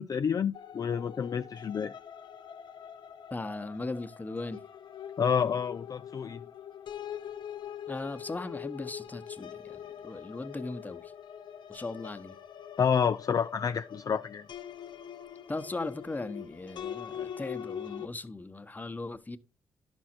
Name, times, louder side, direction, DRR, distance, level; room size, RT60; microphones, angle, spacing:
voice 1, 0.0-1.9 5.2-6.4 12.8-14.5, left 7 dB, 45° left, 0.4 m, -29 dB
sound 1, 0.5-18.1, left 9 dB, 65° left, 0.9 m, -43 dB
voice 2, 3.3-4.6 7.9-11.1 11.7-12.4 15.5-19.4, left 2 dB, 20° left, 1.1 m, -38 dB
11.5 x 6.3 x 4.4 m
supercardioid pair, 60°, 8 cm